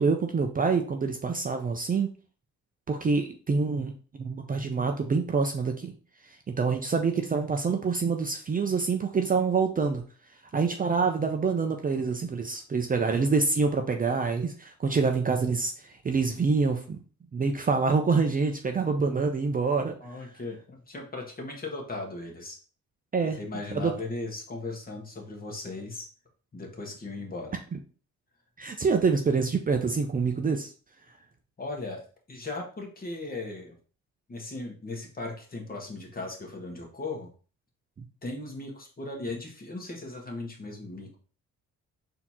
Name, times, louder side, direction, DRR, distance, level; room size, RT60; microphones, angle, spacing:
voice 1, 0.0-2.1 2.9-3.9 4.2-5.9 6.5-10.0 10.5-15.7 16.0-17.0 17.3-19.9 23.1-23.4 23.7-23.9 28.6-30.7 38.0-38.1, right 4 dB, 30° right, 4 dB, 0.6 m, -26 dB
voice 2, 20.0-22.6 23.4-26.1 26.5-27.6 31.6-33.8 34.3-37.3 38.2-41.2, left 2 dB, 30° left, 1 dB, 1.5 m, -37 dB
4.2 x 2.9 x 4.2 m, 0.39 s
cardioid pair, 90°, 30 cm